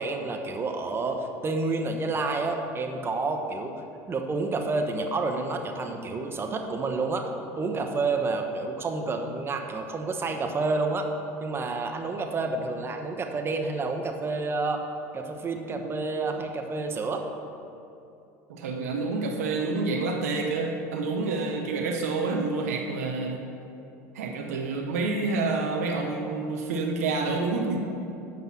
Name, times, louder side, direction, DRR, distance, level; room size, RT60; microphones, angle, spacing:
voice 1, 0.0-3.7 4.1-7.3 7.6-11.1 11.4-14.8 15.1-17.2, right 3 dB, 30° right, 4 dB, 1.0 m, -29 dB
voice 2, 18.5-23.4 24.1-27.8, right 3 dB, 85° right, 2 dB, 0.9 m, -28 dB
7.8 x 5.5 x 7.3 m, 2.7 s
hypercardioid pair, 85°, 8 cm